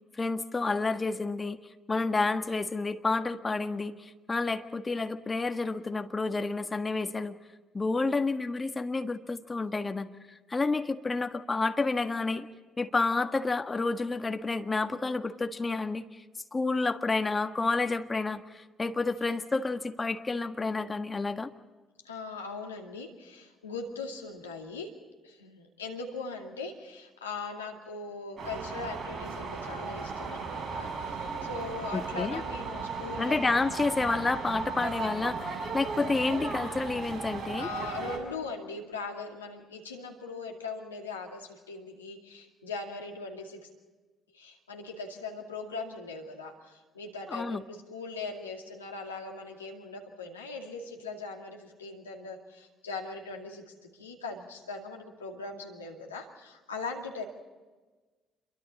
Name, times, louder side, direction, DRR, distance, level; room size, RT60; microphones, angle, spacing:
voice 1, 0.2-1.6 1.9-7.3 7.7-10.1 10.5-12.5 12.8-16.2 16.5-21.5 31.9-32.4 33.2-37.7 47.3-47.6, left 3 dB, 25° left, 7 dB, 1.6 m, -30 dB
voice 2, 22.0-24.9 25.2-33.4 37.6-43.7 44.3-57.2, left 4 dB, 85° left, 1 dB, 2.3 m, -40 dB
sound 1, 28.4-38.2, right 4 dB, 40° right, 6.7 m, -36 dB
28.0 x 23.5 x 4.2 m, 1.3 s
figure-of-eight pair, 45°, 0 cm